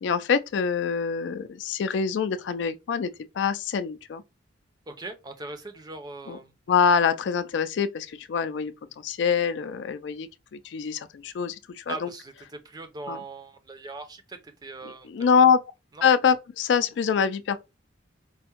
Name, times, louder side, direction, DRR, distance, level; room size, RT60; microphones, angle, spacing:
voice 1, 0.0-4.2 6.3-6.4 6.7-12.1 13.1-13.2 15.1-15.6 16.0-17.6, left 6 dB, 70° left, 0.3 m, -25 dB
voice 2, 4.9-6.5 11.9-15.5 15.9-16.1, right 3 dB, 20° right, 0.4 m, -40 dB
4.5 x 2.0 x 2.8 m
head